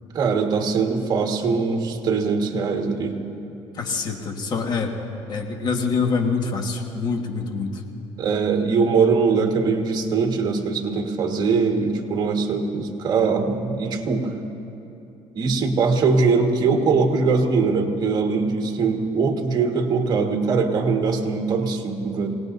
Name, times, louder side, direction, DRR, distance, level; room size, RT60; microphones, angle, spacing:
voice 1, 0.1-3.2 8.2-14.3 15.3-22.3, right 4 dB, 45° right, 3 dB, 1.6 m, -21 dB
voice 2, 3.7-4.9 5.3-7.7, left 4 dB, 45° left, 3 dB, 1.7 m, -25 dB
25.0 x 18.0 x 2.7 m, 2.8 s
cardioid pair, 115°, 10 cm